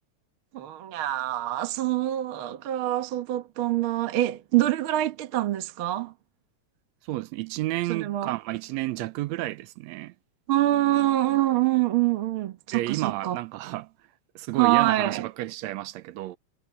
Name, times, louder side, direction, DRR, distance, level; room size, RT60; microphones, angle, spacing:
voice 1, 0.5-6.1 7.9-8.3 10.5-13.4 14.5-15.3, right 15 dB, 60° right, 1.5 m, -25 dB
voice 2, 7.1-10.1 12.7-13.9 14.4-16.4, right 17 dB, 80° right, 1.7 m, -31 dB
omnidirectional pair, 3.4 m